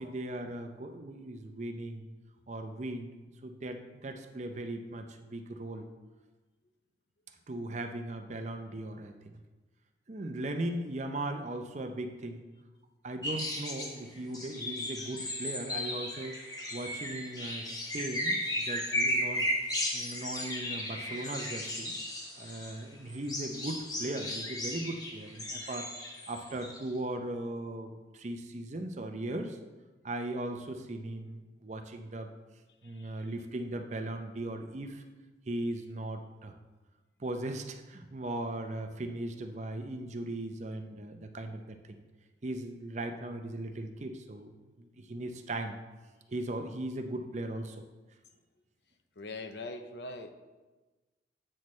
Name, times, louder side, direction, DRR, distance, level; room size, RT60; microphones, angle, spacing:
voice 1, 0.0-2.1 2.5-3.1 3.4-5.9 7.5-9.4 10.1-12.5 13.0-16.4 16.7-21.9 22.4-25.9 26.3-29.6 30.0-32.3 32.8-35.0 35.5-36.5 37.2-42.0 42.4-44.5 44.8-45.8 46.3-47.8, right 1 dB, 40° right, 6 dB, 0.6 m, -38 dB
sound 1, 13.2-13.9 14.3-22.8 23.1-26.8, left 1 dB, 20° left, 1.0 m, -35 dB
voice 2, 32.8-33.3 49.2-50.3, left 2 dB, 70° left, 7 dB, 0.6 m, -42 dB
8.6 x 6.2 x 3.2 m, 1.2 s
head